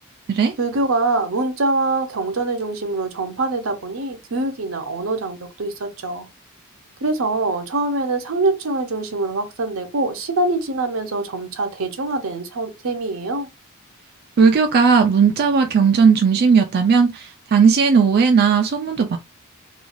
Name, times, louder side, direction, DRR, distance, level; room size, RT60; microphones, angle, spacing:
voice 1, 0.6-6.3 7.0-13.5, right 2 dB, 75° right, 0.7 m, -24 dB
voice 2, 14.4-19.2, right 5 dB, 50° right, 0.4 m, -16 dB
3.1 x 2.3 x 2.5 m
head